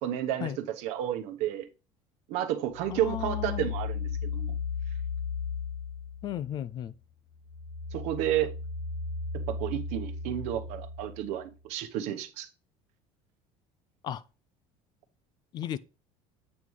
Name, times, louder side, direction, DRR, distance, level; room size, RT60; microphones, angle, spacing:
voice 1, 0.0-0.5 0.8-1.7 2.3-4.5 7.9-8.5 9.5-12.5, right 12 dB, 70° right, 1.0 m, -31 dB
sound 1, 2.8-6.6 7.0-11.6, left 5 dB, 65° left, 1.8 m, -35 dB
voice 2, 2.9-3.7 6.2-6.9 14.0-14.2 15.5-15.8, left 10 dB, 35° left, 0.4 m, -34 dB
8.3 x 3.2 x 5.4 m
cardioid pair, 155°, 12 cm